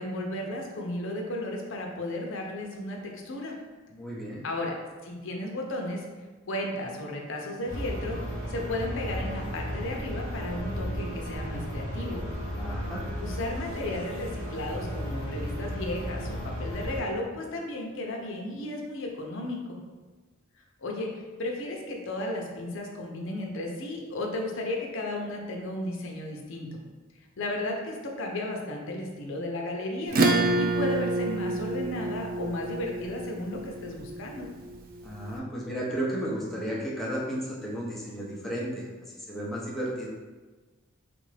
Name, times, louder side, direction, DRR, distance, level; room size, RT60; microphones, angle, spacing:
voice 1, 0.0-3.5 4.4-4.8 5.0-6.1 6.5-12.2 13.2-19.8 20.8-26.8 27.4-30.2 30.5-34.5, left 1 dB, 65° left, 1 dB, 0.6 m, -34 dB
voice 2, 3.9-4.4 12.6-13.0 35.0-38.9 39.1-40.1, right 1 dB, ahead, -6 dB, 0.6 m, -33 dB
sound 1, 7.7-17.0, equal, 70° right, 0.9 m, -34 dB
Acoustic guitar / Strum, 30.1-35.0, right 2 dB, 45° right, 0.4 m, -28 dB
3.5 x 2.5 x 3.3 m, 1.3 s
head